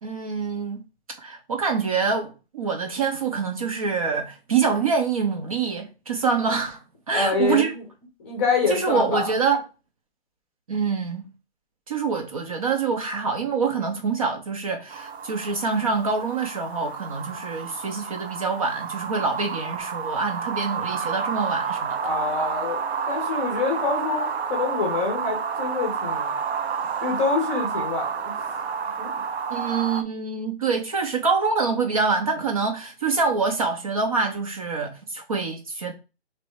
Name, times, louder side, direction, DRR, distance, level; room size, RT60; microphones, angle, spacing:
voice 1, 0.0-0.8 1.2-6.8 7.1-7.7 8.7-9.6 10.7-11.2 11.9-22.0 29.5-35.9, right 5 dB, 35° right, 0.6 m, -25 dB
voice 2, 7.1-7.8 8.2-9.4 22.0-22.8 23.1-26.3 27.0-28.7 29.0-29.2, left 4 dB, 15° left, 0.7 m, -26 dB
sound 1, 14.9-30.0, right 6 dB, 70° right, 0.7 m, -30 dB
3.3 x 3.1 x 4.5 m
hypercardioid pair, 160°, 33 cm